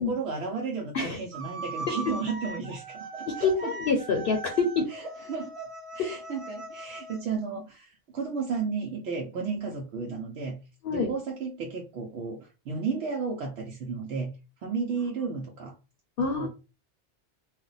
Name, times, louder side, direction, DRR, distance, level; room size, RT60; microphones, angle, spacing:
voice 1, 0.0-3.7 4.9-5.7 5.9-10.6 10.9-14.3 14.6-15.7 16.3-16.5, right 5 dB, 75° right, 0 dB, 0.9 m, -33 dB
sound 1, 1.3-7.2, right 2 dB, 55° right, 0.4 m, -40 dB
voice 2, 3.3-4.9 10.8-11.1 16.2-16.5, left 4 dB, 60° left, 2 dB, 0.7 m, -26 dB
2.4 x 2.1 x 3.8 m, 0.30 s
omnidirectional pair, 1.2 m